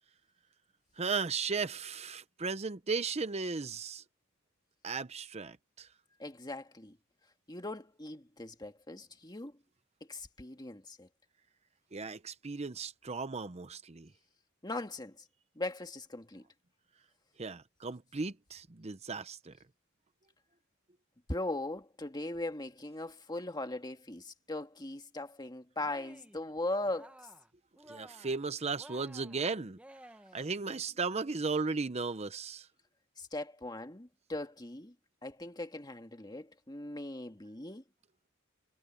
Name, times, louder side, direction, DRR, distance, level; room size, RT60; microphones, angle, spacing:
voice 1, 1.0-4.0 4.8-5.9 11.9-14.1 17.4-19.6 27.9-29.8 30.3-32.7, right 4 dB, 30° right, 0.7 m, -36 dB
voice 2, 6.2-7.0 7.5-9.5 10.1-11.1 14.6-15.2 15.6-16.4 21.3-27.2 33.2-34.9 35.2-37.8, left 2 dB, 20° left, 1.8 m, -39 dB
Cheering, 25.8-26.4 26.8-27.5 27.8-28.4 28.8-30.5, right 1 dB, 5° right, 1.2 m, -54 dB
head